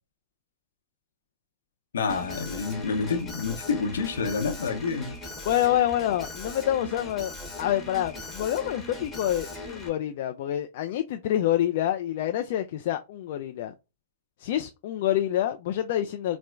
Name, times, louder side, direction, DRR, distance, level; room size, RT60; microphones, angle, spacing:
voice 1, 1.9-5.2, left 5 dB, 70° left, 0.7 m, -28 dB
Alarm, 2.1-9.9, left 1 dB, 10° left, 1.2 m, -39 dB
voice 2, 5.5-13.7 14.4-16.4, left 12 dB, 55° left, 0.3 m, -27 dB
4.4 x 2.0 x 2.4 m
figure-of-eight pair, 105°, 0 cm